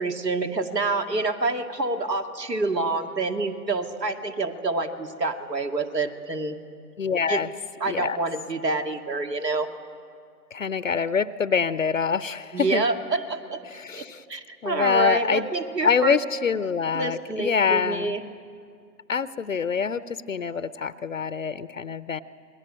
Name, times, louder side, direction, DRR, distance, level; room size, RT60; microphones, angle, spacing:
voice 1, 0.0-6.6 7.3-7.4 7.8-9.7 12.5-13.6 13.9-14.0 14.3-16.2 16.9-18.2, right 3 dB, 75° right, 7 dB, 2.3 m, -27 dB
voice 2, 7.0-7.5 7.9-8.2 10.5-12.9 13.7-14.2 14.6-15.5 15.8-18.2 19.1-22.2, left 6 dB, 50° left, 15 dB, 0.7 m, -25 dB
28.0 x 21.5 x 8.7 m, 2.3 s
figure-of-eight pair, 140°, 50 cm